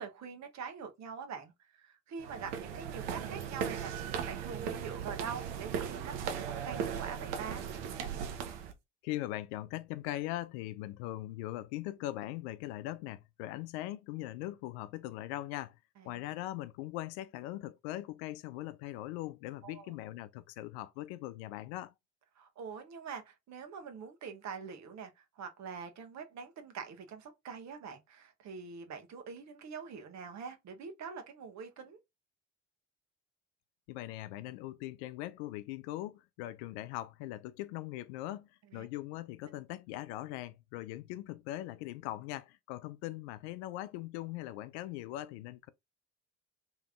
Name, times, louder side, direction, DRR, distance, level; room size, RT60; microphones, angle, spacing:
voice 1, 0.0-7.7 16.0-16.2 19.6-19.9 22.4-32.0 38.7-38.9, right 6 dB, 50° right, 1.2 m, -44 dB
sound 1, 2.2-8.7, right 7 dB, 70° right, 0.9 m, -37 dB
voice 2, 9.0-15.8 16.0-21.9 33.9-45.7, left 15 dB, 70° left, 0.5 m, -40 dB
3.4 x 3.0 x 3.5 m
hypercardioid pair, 55°, 35 cm